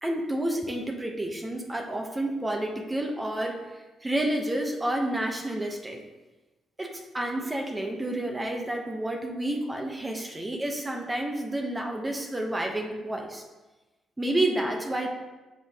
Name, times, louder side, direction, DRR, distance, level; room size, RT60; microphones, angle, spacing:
voice 1, 0.0-3.6 4.0-6.0 6.8-13.4 14.2-15.1, right 1 dB, 20° right, 2 dB, 1.0 m, -30 dB
7.5 x 3.8 x 3.6 m, 1.1 s
supercardioid pair, 55°, 0 cm